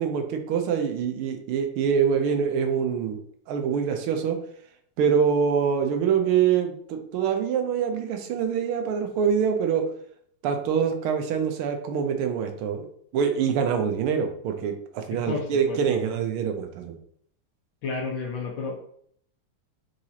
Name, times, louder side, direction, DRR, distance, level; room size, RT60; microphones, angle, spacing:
voice 1, 0.0-3.2 3.5-4.4 5.0-9.9 10.4-12.9 13.1-16.9, right 7 dB, 85° right, 5 dB, 1.6 m, -25 dB
voice 2, 15.1-16.0 17.8-18.8, left 4 dB, 65° left, -1 dB, 1.6 m, -32 dB
4.7 x 3.8 x 2.8 m, 0.64 s
omnidirectional pair, 2.3 m